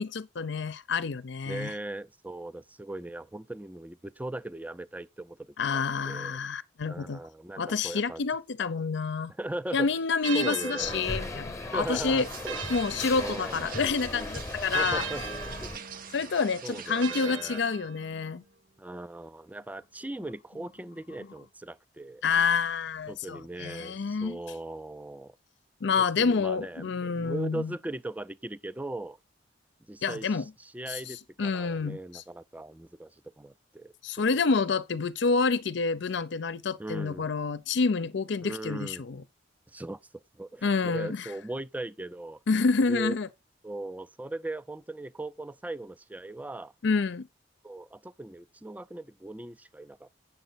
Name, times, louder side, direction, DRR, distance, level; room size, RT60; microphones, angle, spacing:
voice 1, 0.0-1.7 5.6-7.2 7.6-9.3 9.7-12.3 12.7-15.0 16.1-18.4 22.2-24.4 25.8-27.7 30.0-30.4 30.9-32.2 34.0-39.2 40.6-41.3 42.5-43.3 46.8-47.3, left 4 dB, 65° left, 0.5 m, -28 dB
voice 2, 1.5-6.4 6.8-8.2 9.4-9.9 10.3-11.0 11.7-12.6 13.2-13.7 14.7-15.2 15.6-15.8 16.6-17.6 18.8-22.2 23.1-25.4 26.0-29.2 29.9-34.4 36.8-37.3 38.4-39.0 39.7-42.4 42.9-43.1 43.6-46.7 47.6-50.1, right 2 dB, 10° right, 0.4 m, -39 dB
sound 1, 10.2-14.0 14.7-18.4, right 6 dB, 70° right, 1.3 m, -40 dB
sound 2, 10.8-15.8, left 2 dB, 15° left, 0.9 m, -37 dB
sound 3, 12.2-17.3, right 8 dB, 45° right, 0.6 m, -45 dB
9.1 x 6.9 x 4.1 m
head